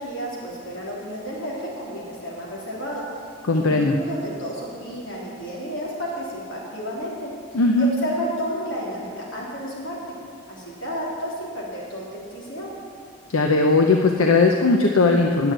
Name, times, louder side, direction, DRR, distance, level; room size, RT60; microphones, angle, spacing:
voice 1, 0.0-10.1 10.5-12.7, equal, 65° left, -5 dB, 3.7 m, -32 dB
voice 2, 3.5-4.0 7.5-7.9 13.3-15.5, left 3 dB, 85° left, 3 dB, 0.8 m, -18 dB
10.0 x 7.9 x 8.9 m, 2.3 s
head